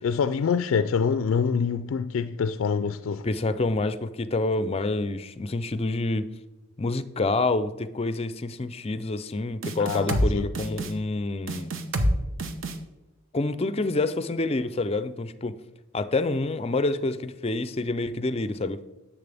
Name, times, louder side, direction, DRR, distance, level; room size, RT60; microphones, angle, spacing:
voice 1, 0.0-3.3 9.8-10.5, left 6 dB, 90° left, 0.3 m, -26 dB
voice 2, 3.2-6.3 6.8-11.7 13.3-15.6 15.9-18.8, left 2 dB, 30° left, 0.5 m, -27 dB
sound 1, 9.6-10.3 10.5-10.9 11.5-12.1 12.4-12.8, right 1 dB, 80° right, 1.0 m, -25 dB
10.5 x 7.6 x 3.4 m
head